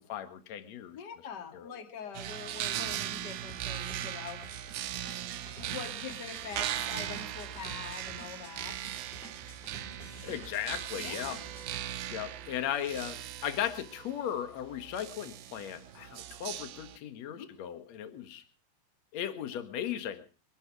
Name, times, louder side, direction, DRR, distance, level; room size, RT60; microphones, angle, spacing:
voice 1, 0.0-1.0 1.5-1.7 10.2-11.4 12.1-18.4 19.1-20.2, left 10 dB, 55° left, 9 dB, 1.9 m, -37 dB
voice 2, 0.9-4.4 5.6-8.8 11.0-11.4 17.2-17.5, left 7 dB, 35° left, 5 dB, 1.9 m, -44 dB
sound 1, 2.1-17.0, right 12 dB, 70° right, 2.3 m, -39 dB
sound 2, 3.5-11.8, right 1 dB, 15° left, 3.6 m, -51 dB
24.5 x 12.0 x 4.8 m, 0.37 s
omnidirectional pair, 5.3 m